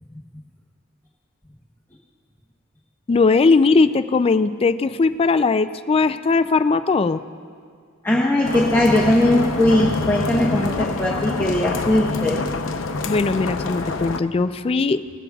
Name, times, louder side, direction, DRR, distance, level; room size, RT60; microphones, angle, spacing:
voice 1, 3.1-7.2 13.1-15.0, left 4 dB, 30° left, 12 dB, 0.3 m, -19 dB
voice 2, 8.0-12.4, left 1 dB, 10° left, -5 dB, 1.0 m, -19 dB
sound 1, 8.4-14.2, left 3 dB, 85° left, 0.7 m, -26 dB
20.0 x 15.0 x 2.4 m, 2.1 s
head